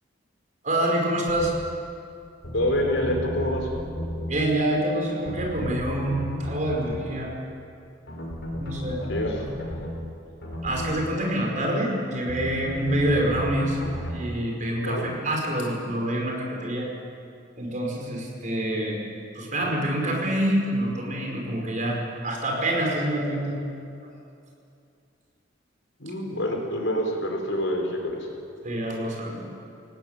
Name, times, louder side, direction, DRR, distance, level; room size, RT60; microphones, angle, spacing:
voice 1, 0.6-1.5 4.3-7.3 8.6-9.0 9.4-9.5 10.6-13.8 14.1-16.9 17.6-19.0 19.4-23.6 28.6-29.4, right 1 dB, 40° right, -1 dB, 5.3 m, -26 dB
sound 1, 1.3-1.5 2.4-4.3 5.2-7.1 8.1-10.0 10.4-10.9 12.3-14.2, equal, 60° left, 5.8 m, -34 dB
voice 2, 2.5-3.7 9.1-9.4 14.8-15.1 26.0-28.3, left 1 dB, 75° left, 1 dB, 4.6 m, -26 dB
23.0 x 18.0 x 9.3 m, 2.5 s
head